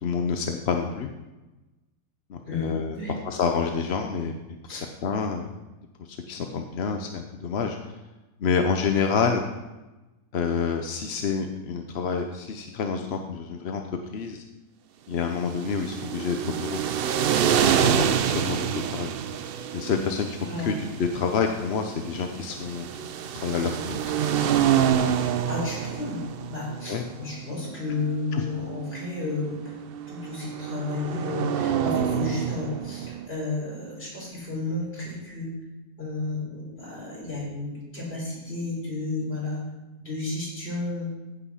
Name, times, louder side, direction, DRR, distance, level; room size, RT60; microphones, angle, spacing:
voice 1, 0.0-1.1 2.3-3.0 3.2-4.3 4.7-5.5 6.1-7.8 8.4-9.4 10.3-13.8 14.1-14.4 15.1-16.8 17.6-18.7 18.9-19.1 19.7-22.9 23.3-24.1 26.9-27.0 28.3-28.4, left 5 dB, 55° left, 4 dB, 0.8 m, -28 dB
voice 2, 2.5-3.1 4.7-4.9 20.5-20.7 25.2-26.2 26.5-29.8 30.1-35.5 36.0-39.6 40.0-41.1, left 2 dB, 40° left, -5 dB, 4.8 m, -32 dB
sound 1, 15.4-33.3, right 8 dB, 80° right, 0.5 m, -27 dB
15.0 x 5.4 x 5.6 m, 1.1 s
omnidirectional pair, 1.7 m